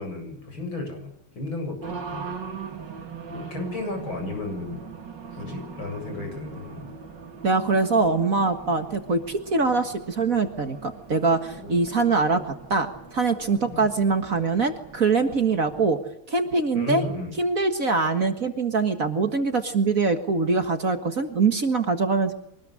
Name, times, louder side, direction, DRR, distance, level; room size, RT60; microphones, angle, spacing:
voice 1, 0.0-2.3 3.3-4.8 5.3-6.9 11.5-11.7 12.0-12.1 13.7-13.9 16.7-17.4, left 2 dB, 70° left, 5 dB, 8.4 m, -34 dB
Race car auto racing, 1.8-15.9, right 6 dB, 60° right, 3.2 m, -41 dB
voice 2, 7.4-16.0 16.3-17.0 17.4-22.3, right 4 dB, 40° right, 7 dB, 2.0 m, -23 dB
24.5 x 20.0 x 9.9 m, 0.80 s
omnidirectional pair, 2.3 m